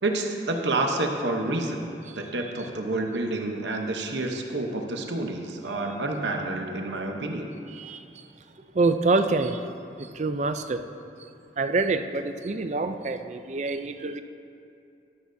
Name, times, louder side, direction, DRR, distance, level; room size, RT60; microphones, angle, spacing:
voice 1, 0.0-7.5, right 2 dB, 80° right, 0.9 m, -29 dB
voice 2, 7.7-8.3 8.6-9.7 10.0-10.9 11.6-14.2, right 3 dB, 40° right, 0.4 m, -27 dB
12.5 x 11.5 x 2.7 m
head